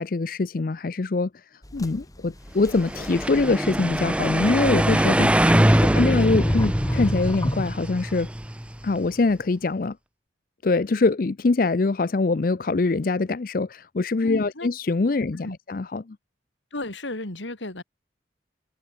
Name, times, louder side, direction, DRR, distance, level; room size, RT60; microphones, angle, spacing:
voice 1, 0.0-5.4 5.9-8.3 8.8-10.0 10.6-16.2, left 3 dB, 50° left, 0.5 m, -24 dB
sound 1, 1.6-8.1, equal, 20° left, 3.3 m, -31 dB
sound 2, 2.7-8.9, right 1 dB, 5° right, 0.6 m, -23 dB
voice 2, 5.5-6.1 14.2-14.7 15.4-15.6 16.7-17.8, left 1 dB, 80° left, 3.2 m, -34 dB
head